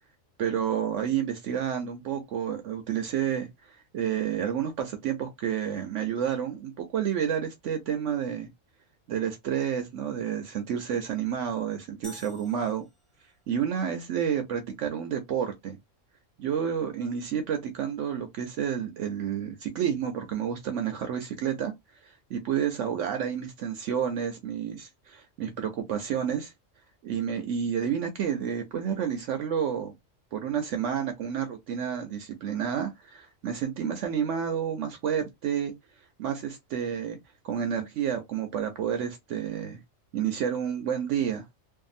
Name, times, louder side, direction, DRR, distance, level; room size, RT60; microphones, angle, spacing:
voice 1, 0.4-8.5 9.1-12.8 13.5-15.8 16.4-21.7 22.0-26.5 27.0-29.9 30.3-35.7 36.2-37.2 37.4-39.8 40.1-41.4, right 8 dB, 75° right, 0.9 m, -30 dB
sound 1, 12.0-13.4, left 1 dB, ahead, 0.6 m, -49 dB
2.6 x 2.5 x 2.5 m
omnidirectional pair, 1.3 m